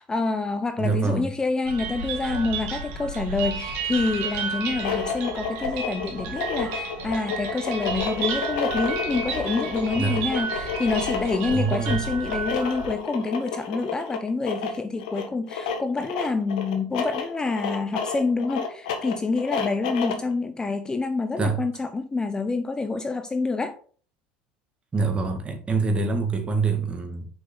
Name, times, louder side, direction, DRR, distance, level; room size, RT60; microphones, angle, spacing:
voice 1, 0.0-23.8, left 3 dB, 15° left, 0.6 m, -27 dB
voice 2, 0.8-1.3 9.9-10.2 11.5-12.0 21.4-21.6 24.9-27.3, right 4 dB, 25° right, 2.1 m, -25 dB
sound 1, 1.6-13.0, right 4 dB, 60° right, 2.2 m, -32 dB
sound 2, 4.6-20.3, left 6 dB, 75° left, 1.5 m, -31 dB
7.0 x 5.4 x 4.0 m
hypercardioid pair, 85°, 4 cm